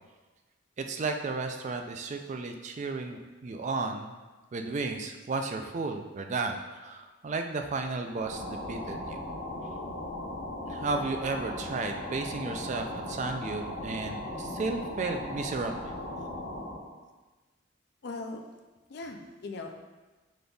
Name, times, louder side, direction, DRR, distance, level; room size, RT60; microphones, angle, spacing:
voice 1, 0.8-4.1 4.5-9.2 10.7-16.0, right 3 dB, 35° right, 5 dB, 0.3 m, -33 dB
sound 1, 8.0-16.9, left 1 dB, 80° left, 0.8 m, -38 dB
voice 2, 18.0-18.4 18.9-19.7, left 3 dB, 55° left, 3 dB, 0.4 m, -39 dB
5.2 x 3.9 x 2.3 m, 1.2 s
head